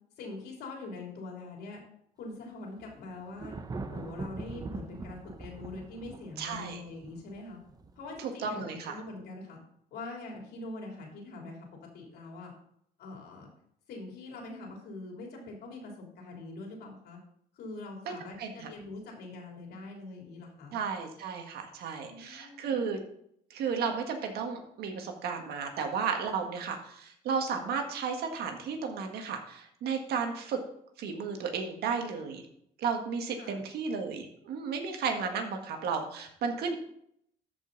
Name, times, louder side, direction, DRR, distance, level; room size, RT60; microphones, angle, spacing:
voice 1, 0.2-1.8 2.2-3.5 3.9-7.6 7.9-9.6 9.9-11.6 11.9-12.5 13.0-13.5 13.9-17.2 17.5-20.8 22.0-22.9 33.4-33.6, left 2 dB, 75° left, 0 dB, 3.3 m, -43 dB
Thunder, 2.8-8.2, right 3 dB, 20° right, 0.7 m, -42 dB
voice 2, 6.4-6.8 8.2-9.0 18.1-18.2 18.4-18.7 20.7-23.0 23.5-30.6 31.0-32.4 32.8-36.7, right 5 dB, 70° right, 4 dB, 1.8 m, -33 dB
13.0 x 5.5 x 4.0 m, 0.71 s
cardioid pair, 110°, 17 cm